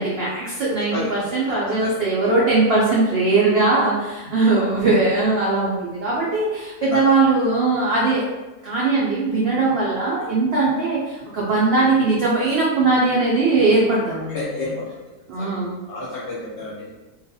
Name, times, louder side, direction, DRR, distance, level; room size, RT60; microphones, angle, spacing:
voice 1, 0.0-8.2 8.6-14.5 15.3-15.8, right 3 dB, 75° right, -6 dB, 0.5 m, -20 dB
voice 2, 14.3-15.0 15.4-16.9, left 2 dB, 60° left, -8 dB, 0.8 m, -31 dB
2.4 x 2.3 x 2.6 m, 1.1 s
omnidirectional pair, 1.6 m